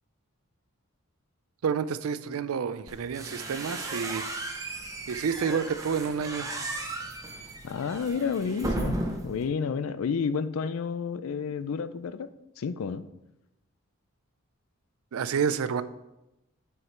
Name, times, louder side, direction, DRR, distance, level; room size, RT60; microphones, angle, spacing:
voice 1, 1.6-4.3 5.1-6.5 15.1-15.8, right 6 dB, 85° right, 14 dB, 0.4 m, -29 dB
sound 1, 2.9-9.4, right 2 dB, 15° right, 0.7 m, -35 dB
voice 2, 7.6-9.0 9.2-12.3 12.6-13.1, left 6 dB, 80° left, 13 dB, 0.4 m, -30 dB
6.4 x 4.7 x 4.5 m, 0.91 s
head